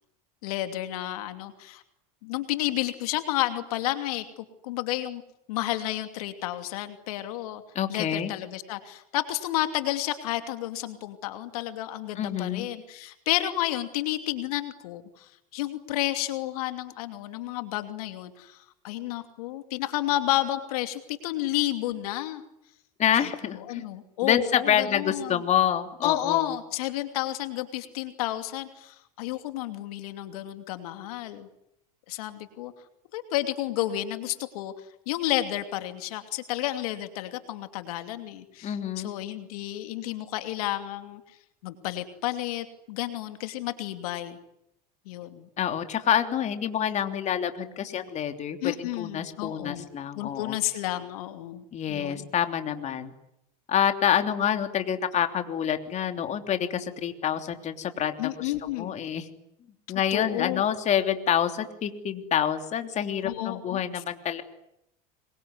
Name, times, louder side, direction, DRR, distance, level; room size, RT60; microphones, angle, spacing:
voice 1, 0.4-1.8 2.2-5.2 5.5-7.6 7.9-22.4 23.2-23.3 23.7-25.4 26.0-31.5 32.1-32.7 33.1-34.7 35.1-41.2 41.6-44.4 45.1-45.5 48.6-49.9 50.1-52.3 58.2-59.0 60.1-60.6 63.2-64.0, left 14 dB, 80° left, 8 dB, 2.8 m, -31 dB
voice 2, 7.7-8.3 12.1-12.7 23.0-23.8 24.2-26.5 38.6-39.1 45.6-50.6 51.7-53.1 53.7-59.3 59.9-64.4, left 9 dB, 40° left, 7 dB, 3.3 m, -27 dB
26.5 x 23.0 x 9.8 m, 0.80 s
supercardioid pair, 110°, 19 cm